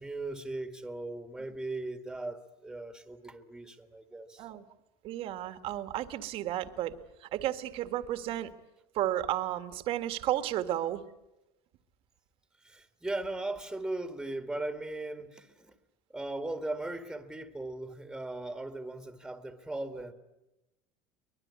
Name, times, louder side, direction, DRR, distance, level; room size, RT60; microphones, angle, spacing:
voice 1, 0.0-4.5 12.6-15.7 16.1-20.1, right 2 dB, 5° right, 8 dB, 1.8 m, -38 dB
voice 2, 5.0-6.9 7.2-8.5 8.9-11.0, right 13 dB, 55° right, 10 dB, 1.8 m, -33 dB
24.0 x 21.0 x 9.7 m, 0.96 s
cardioid pair, 135°, 12 cm